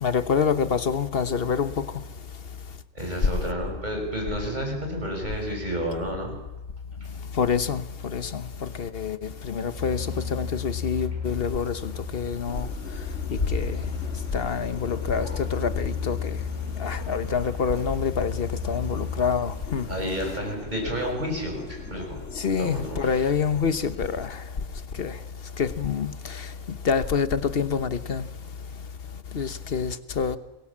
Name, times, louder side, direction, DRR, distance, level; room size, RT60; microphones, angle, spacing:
voice 1, 0.0-2.0 7.3-12.7 13.0-13.1 13.3-13.9 14.3-16.4 16.7-19.9 22.4-24.5 24.9-25.2 25.6-28.3 29.3-30.4, left 6 dB, 50° left, 1.3 m, -27 dB
voice 2, 2.9-6.4 19.9-23.3, equal, 35° right, 6.7 m, -31 dB
sound 1, 9.8-20.3, left 6 dB, 80° right, 7.9 m, -34 dB
sound 2, 12.5-24.4, left 3 dB, 70° left, 2.3 m, -37 dB
29.0 x 22.0 x 7.5 m
omnidirectional pair, 1.3 m